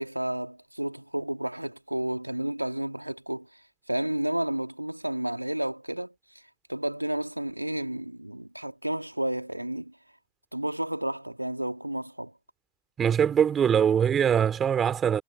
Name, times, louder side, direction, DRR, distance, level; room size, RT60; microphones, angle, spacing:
voice 1, 0.0-3.6 3.9-6.1 6.7-9.9 10.5-12.3, right 1 dB, 85° right, 2.9 m, -31 dB
voice 2, 13.0-15.2, right 8 dB, 25° right, 4.3 m, -22 dB
figure-of-eight pair, 90°, 0 cm